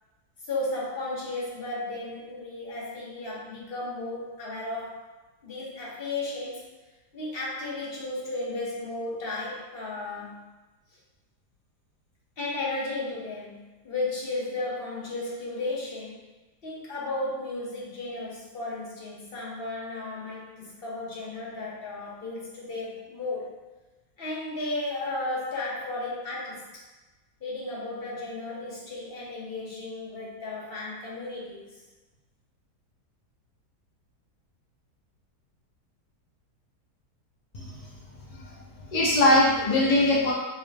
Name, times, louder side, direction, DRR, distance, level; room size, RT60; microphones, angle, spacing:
voice 1, 0.4-5.1 5.4-6.7 7.1-10.5 12.4-16.2 16.6-23.6 24.2-26.6 27.4-31.8, left 2 dB, 45° left, -5 dB, 0.9 m, -34 dB
voice 2, 37.5-37.9 38.3-38.5 38.9-40.3, left 1 dB, 80° left, -4 dB, 0.4 m, -22 dB
4.6 x 2.1 x 3.3 m, 1.1 s
omnidirectional pair, 1.8 m